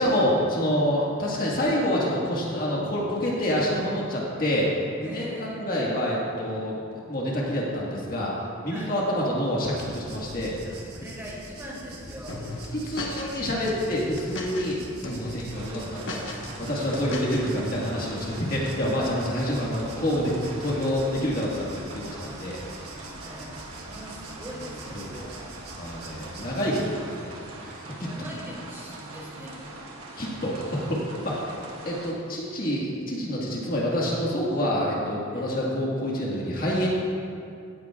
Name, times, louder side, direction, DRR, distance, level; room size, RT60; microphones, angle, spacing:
voice 1, 0.0-4.7 5.0-6.8 7.1-8.3 8.6-10.6 12.7-16.2 16.6-22.6 24.9-25.1 25.8-27.3 27.6-27.7 28.0-28.1 30.2-31.5 31.8-36.9, equal, 45° left, -4 dB, 1.6 m, -27 dB
voice 2, 5.0-5.7 8.7-9.0 10.6-12.4 22.5-25.5 26.1-26.8 28.1-29.7 35.3-35.5, equal, 10° right, -5 dB, 2.3 m, -42 dB
sound 1, 9.7-26.9, right 2 dB, 50° right, 1.3 m, -45 dB
sound 2, 12.3-13.4 13.7-14.7 15.0-15.4 15.7-17.5, left 2 dB, 60° left, 1.2 m, -36 dB
sound 3, 15.5-32.1, right 2 dB, 80° right, 1.3 m, -42 dB
16.0 x 10.0 x 2.4 m, 2.5 s
head